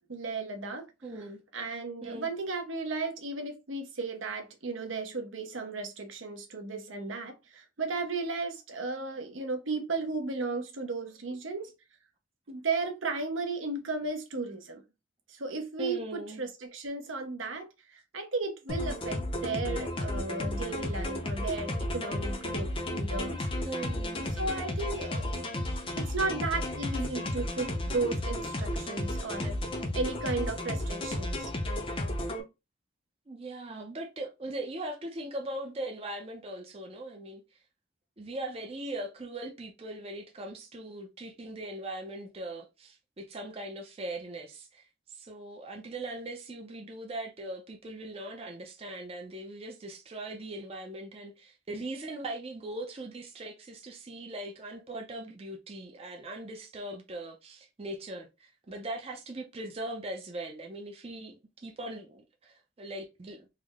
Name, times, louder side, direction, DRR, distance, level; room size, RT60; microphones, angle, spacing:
voice 1, 0.1-0.9 1.5-11.7 12.5-14.8 15.3-23.5 24.3-25.4 26.0-29.6 29.9-31.5, right 3 dB, 80° right, 0.8 m, -35 dB
voice 2, 1.0-1.4 2.0-2.3 15.8-16.4 23.6-24.3 33.3-37.4 38.2-63.5, right 1 dB, 30° right, 0.5 m, -40 dB
sound 1, 18.7-32.4, left 1 dB, 25° left, 0.5 m, -33 dB
3.4 x 2.0 x 3.5 m
head